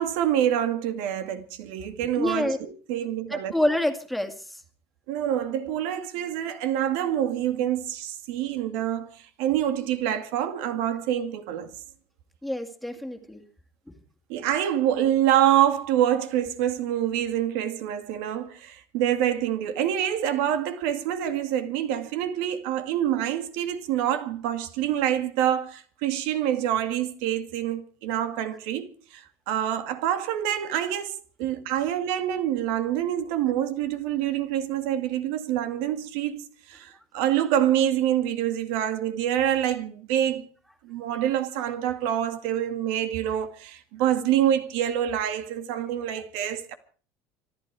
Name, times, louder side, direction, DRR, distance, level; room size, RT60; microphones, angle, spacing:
voice 1, 0.0-3.5 5.1-11.7 14.3-36.4 36.7-40.5 40.8-46.8, right 11 dB, 80° right, 2.1 m, -26 dB
voice 2, 2.2-2.6 3.3-4.6 12.4-13.4 13.9-14.0 31.4-31.5, left 1 dB, ahead, 2.2 m, -27 dB
26.0 x 11.5 x 4.8 m
cardioid pair, 145°, 7 cm